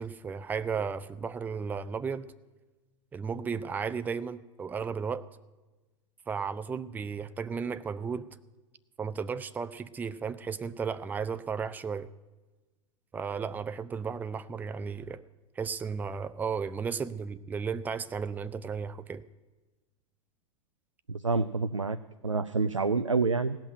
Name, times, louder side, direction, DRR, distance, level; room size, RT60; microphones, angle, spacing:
voice 1, 0.0-2.3 3.1-5.2 6.3-8.3 9.0-12.1 13.1-15.2 15.6-19.2, right 6 dB, 10° right, 14 dB, 0.4 m, -34 dB
voice 2, 21.1-22.0 22.2-23.6, right 4 dB, 90° right, 13 dB, 0.4 m, -27 dB
17.0 x 6.0 x 9.0 m, 1.2 s
figure-of-eight pair, 90°, 16 cm